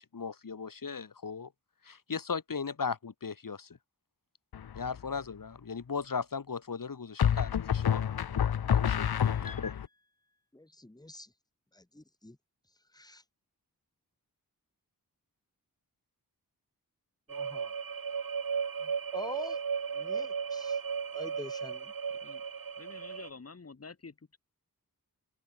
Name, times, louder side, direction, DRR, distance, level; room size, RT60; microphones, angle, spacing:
voice 1, 0.0-1.5 1.8-3.8 4.7-8.0 8.7-9.7, left 5 dB, 60° left, 1.7 m, -37 dB
sound 1, 4.5-5.0 7.2-9.9, left 9 dB, 85° left, 0.7 m, -28 dB
voice 2, 9.2-9.6 10.5-11.3 11.7-12.4 12.9-13.2 17.3-17.7 18.8-19.6 19.9-20.8 21.1-21.9, left 1 dB, 10° left, 1.8 m, -45 dB
sound 2, 17.3-23.3, right 6 dB, 65° right, 1.3 m, -35 dB
voice 3, 22.8-24.4, left 4 dB, 40° left, 1.5 m, -49 dB
open air
wide cardioid pair, 85°, 37 cm